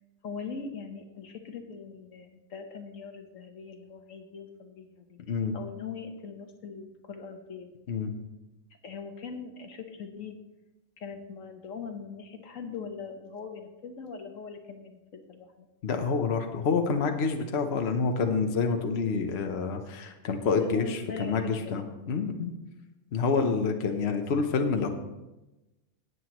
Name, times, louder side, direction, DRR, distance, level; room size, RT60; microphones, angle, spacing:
voice 1, 0.2-5.2 5.5-7.7 8.8-10.4 11.0-15.7 20.5-22.0, left 5 dB, 80° left, 5 dB, 1.4 m, -41 dB
voice 2, 15.8-22.5 23.1-24.9, left 5 dB, 55° left, 5 dB, 1.1 m, -28 dB
17.0 x 8.1 x 3.0 m, 1.0 s
omnidirectional pair, 1.4 m